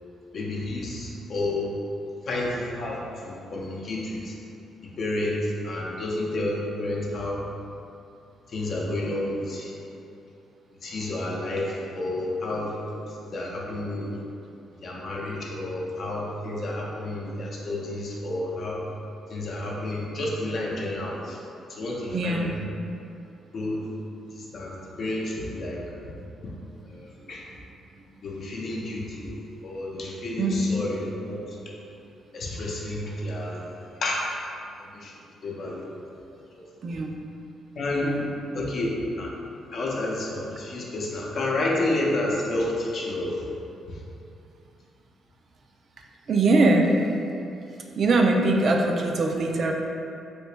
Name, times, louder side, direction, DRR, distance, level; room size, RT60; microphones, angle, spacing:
voice 1, 0.3-1.7 2.3-4.3 4.8-7.4 8.5-9.8 10.8-12.8 13.1-14.1 14.8-18.8 19.3-21.4 21.7-22.5 23.5-23.9 24.3-26.1 26.4-26.5 26.8-27.4 28.2-31.6 32.3-33.7 34.0-34.3 34.8-35.1 35.4-35.9 36.3-36.4 37.8-38.1 38.5-38.9 39.2-39.3 39.7-43.4 43.9-44.0, left 1 dB, 55° left, -3 dB, 0.6 m, -30 dB
voice 2, 22.1-22.5 30.4-30.7 36.8-37.2 38.0-38.3 46.3-46.9 48.0-49.7, right 2 dB, 55° right, 2 dB, 0.4 m, -22 dB
3.1 x 2.9 x 3.2 m, 2.6 s
cardioid pair, 90°, 0 cm